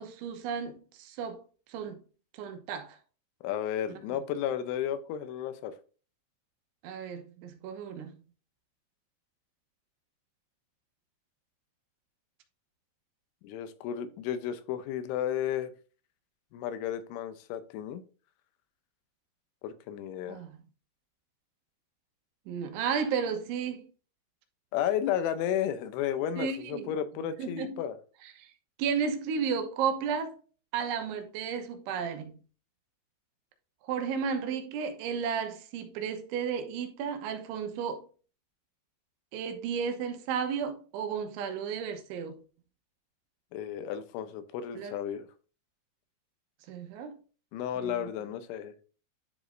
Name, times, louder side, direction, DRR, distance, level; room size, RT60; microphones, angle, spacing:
voice 1, 0.0-1.4 1.7-2.0 2.4-3.0 6.8-8.1 20.3-20.5 22.5-23.9 26.4-26.9 27.4-27.8 28.4-28.5 28.8-30.4 30.7-32.4 33.8-38.1 39.3-42.4 44.7-45.0 46.7-47.2 47.8-48.1, right 6 dB, 90° right, 3.4 m, -33 dB
voice 2, 3.4-5.7 13.4-15.7 16.5-18.0 19.6-20.4 24.7-28.0 43.5-45.3 47.5-48.8, left 10 dB, 90° left, 3.2 m, -33 dB
11.0 x 5.1 x 2.6 m
omnidirectional pair, 5.3 m